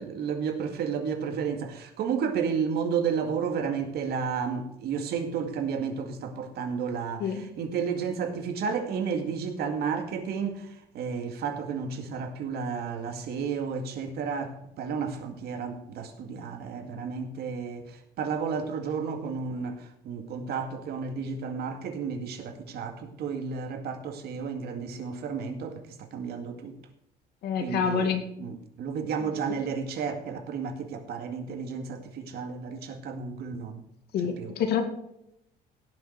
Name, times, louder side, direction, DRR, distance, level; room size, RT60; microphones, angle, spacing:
voice 1, 0.0-26.8 27.6-28.1 28.4-33.8 34.4-34.6, right 6 dB, 70° right, 6 dB, 2.1 m, -32 dB
voice 2, 27.4-28.2 29.2-29.3 34.1-34.8, left 7 dB, 70° left, 6 dB, 2.2 m, -27 dB
17.5 x 6.7 x 4.5 m, 0.79 s
cardioid pair, 110°, 17 cm